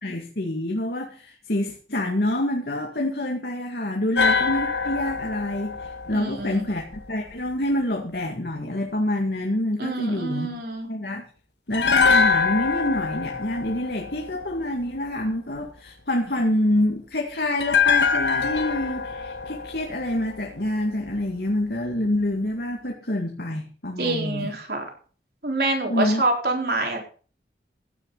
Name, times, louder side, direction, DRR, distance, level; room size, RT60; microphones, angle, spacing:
voice 1, 0.0-10.5 10.9-11.2 11.7-24.5 25.9-26.2, left 1 dB, 65° left, 1 dB, 2.1 m, -27 dB
sound 1, 4.2-7.3 11.7-15.0 17.6-20.8 21.1-21.2, left 5 dB, 85° left, 1.5 m, -24 dB
voice 2, 6.1-6.7 9.8-10.9 24.0-24.8 25.4-27.0, right 2 dB, 65° right, 2 dB, 4.2 m, -26 dB
16.0 x 11.0 x 4.0 m, 0.40 s
head